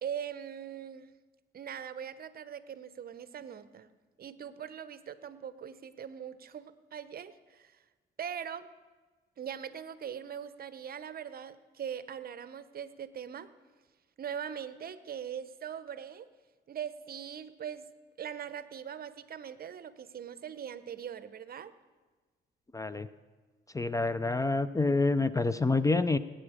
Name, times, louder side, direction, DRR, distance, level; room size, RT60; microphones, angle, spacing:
voice 1, 0.0-1.2 1.5-3.9 4.2-7.8 8.2-8.7 9.4-13.5 14.2-16.3 16.7-17.9 18.2-21.7, right 8 dB, 50° right, 13 dB, 0.7 m, -41 dB
voice 2, 22.7-23.1 23.7-26.2, left 3 dB, 15° left, 14 dB, 0.4 m, -27 dB
19.5 x 8.9 x 5.0 m, 1.3 s
cardioid pair, 90°, 20 cm